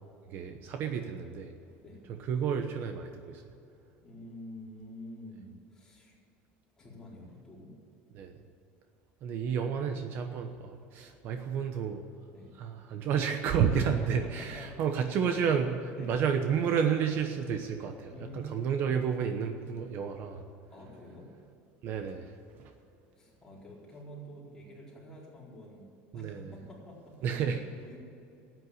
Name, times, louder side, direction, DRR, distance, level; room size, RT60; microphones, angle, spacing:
voice 1, 0.3-1.5 2.1-3.4 8.1-8.4 9.2-12.0 12.6-20.4 21.8-22.7 26.1-26.5 27.2-27.6, right 7 dB, 45° right, 7 dB, 1.0 m, -31 dB
voice 2, 4.0-6.2 6.8-7.8 12.3-12.5 13.6-15.0 15.9-16.2 18.1-18.9 20.7-21.3 23.1-25.9 26.1-28.0, equal, 10° left, -6 dB, 4.4 m, -48 dB
13.5 x 9.4 x 9.5 m, 2.7 s
cardioid pair, 160°, 5 cm